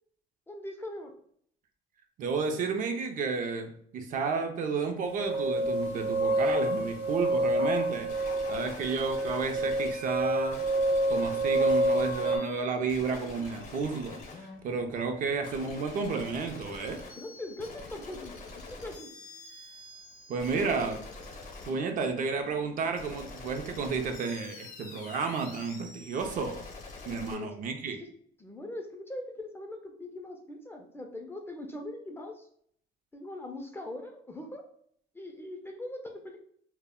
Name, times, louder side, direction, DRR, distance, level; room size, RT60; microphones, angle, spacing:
voice 1, 0.5-1.1 17.2-19.1 20.5-20.8 27.1-27.5 28.4-32.4 33.1-34.6 35.1-36.4, left 1 dB, 15° left, 3 dB, 0.4 m, -41 dB
voice 2, 2.2-8.2 8.5-10.6 11.1-14.2 14.6-17.0 20.3-21.0 21.6-26.6 27.1-28.0, right 4 dB, 50° right, 5 dB, 0.4 m, -32 dB
sound 1, 5.1-12.4, right 1 dB, 80° right, 0.7 m, -28 dB
sound 2, 8.1-27.3, left 3 dB, 55° left, 0.7 m, -46 dB
2.1 x 2.0 x 3.5 m, 0.63 s
cardioid pair, 110°, 17 cm